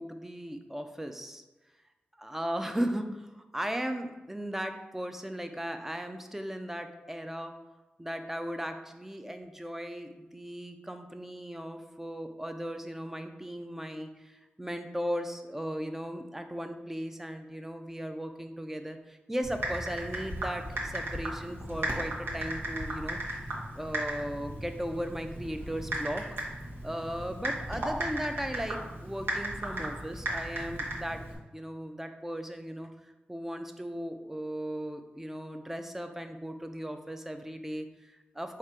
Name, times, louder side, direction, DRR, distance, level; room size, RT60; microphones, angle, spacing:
voice 1, 0.0-1.4 2.2-7.5 8.0-23.2 23.7-26.2 26.8-32.9 33.3-38.6, equal, 10° right, 7 dB, 0.5 m, -37 dB
Typing, 19.4-31.3, right 1 dB, 85° right, 1.0 m, -36 dB
4.3 x 2.5 x 4.6 m, 1.1 s
cardioid pair, 65°, 4 cm